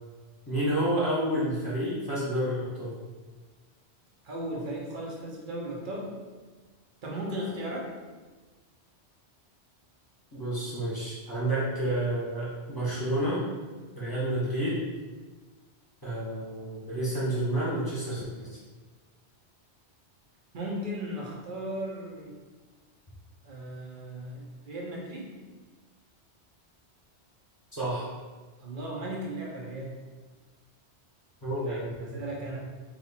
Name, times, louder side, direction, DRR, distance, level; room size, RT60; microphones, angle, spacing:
voice 1, 0.5-3.0 10.3-13.5 13.9-14.8 16.0-18.6 27.7-28.1 31.4-32.2, right 1 dB, 20° left, -9 dB, 1.2 m, -30 dB
voice 2, 4.2-6.2 7.0-7.9 20.5-22.3 23.4-25.4 28.6-30.0 31.7-32.6, right 1 dB, 50° right, -3 dB, 1.0 m, -36 dB
3.3 x 2.9 x 4.2 m, 1.3 s
omnidirectional pair, 1.1 m